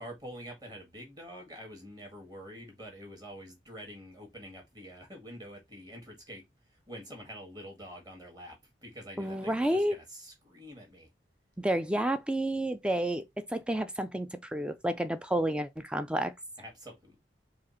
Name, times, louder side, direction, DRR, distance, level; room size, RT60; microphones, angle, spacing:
voice 1, 0.0-6.4 6.7-11.1 16.6-17.2, equal, 20° right, 1.8 m, -46 dB
voice 2, 9.2-10.0 11.6-13.2 13.5-16.3, right 1 dB, 5° right, 0.3 m, -30 dB
4.9 x 2.5 x 4.2 m
head